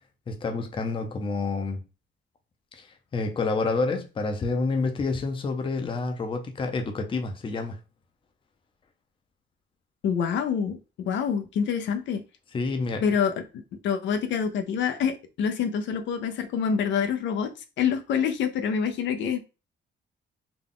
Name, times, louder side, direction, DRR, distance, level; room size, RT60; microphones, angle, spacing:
voice 1, 0.3-1.8 2.7-7.8 12.5-13.0, left 3 dB, 25° left, 0.6 m, -28 dB
voice 2, 10.0-12.2 13.0-17.5 17.8-19.4, left 7 dB, 70° left, 0.6 m, -26 dB
3.9 x 2.3 x 3.6 m
cardioid pair, 155°, 19 cm